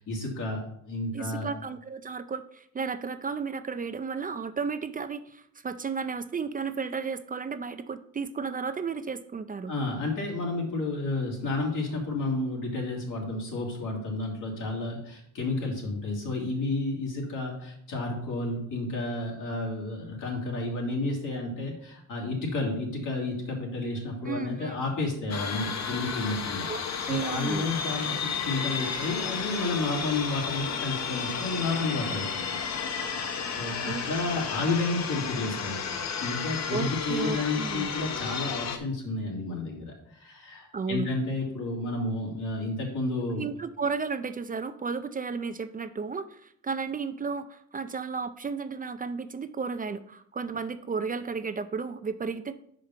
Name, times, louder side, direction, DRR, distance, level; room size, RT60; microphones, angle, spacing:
voice 1, 0.0-1.5 9.7-26.7 27.1-32.2 33.6-35.9 36.2-43.4, left 2 dB, 90° left, -1 dB, 2.4 m, -31 dB
voice 2, 1.1-9.7 24.3-24.8 26.7-27.7 33.8-34.0 36.7-37.9 40.7-41.1 43.4-52.5, right 5 dB, 30° right, 11 dB, 0.3 m, -33 dB
sound 1, 25.3-38.8, left 6 dB, 60° left, 0.8 m, -32 dB
5.5 x 5.1 x 5.8 m, 0.71 s
wide cardioid pair, 140°, 31 cm